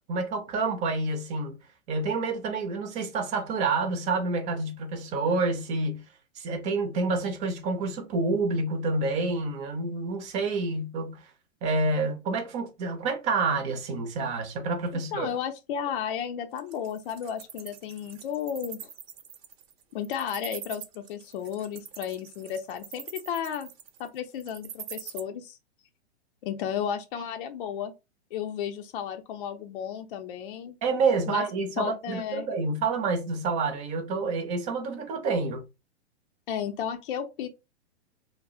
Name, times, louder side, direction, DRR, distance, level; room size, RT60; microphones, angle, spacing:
voice 1, 0.1-1.6 1.9-6.0 6.4-11.2 11.6-15.3 30.8-35.6, right 3 dB, 20° right, 0.5 m, -28 dB
voice 2, 14.9-18.9 19.9-23.7 24.0-25.6 26.4-27.9 28.3-30.8 31.3-31.4 31.8-32.5 36.5-37.5, left 8 dB, 50° left, 0.5 m, -33 dB
Wild animals, 16.6-25.2, right 9 dB, 60° right, 0.8 m, -42 dB
2.3 x 2.0 x 3.5 m
hypercardioid pair, 130°, 34 cm